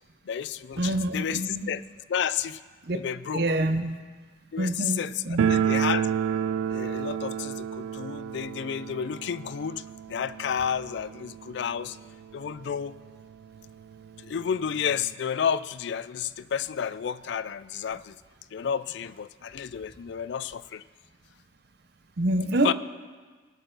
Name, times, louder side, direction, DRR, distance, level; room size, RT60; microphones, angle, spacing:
voice 1, 0.3-1.8 2.1-2.6 2.9-3.4 4.5-6.1 6.7-12.0 12.3-13.0 14.2-18.2 18.5-20.8 22.6-22.7, left 8 dB, 60° left, 16 dB, 0.3 m, -31 dB
voice 2, 0.8-1.7 2.9-3.0 3.3-4.0 4.6-5.6 22.2-22.7, right 1 dB, 55° right, 9 dB, 0.6 m, -27 dB
sound 1, 5.4-12.1 12.3-12.4 12.7-12.8 13.5-13.6 13.9-15.1, right 8 dB, 85° right, 0.3 m, -30 dB
20.0 x 6.8 x 3.9 m, 1.4 s
head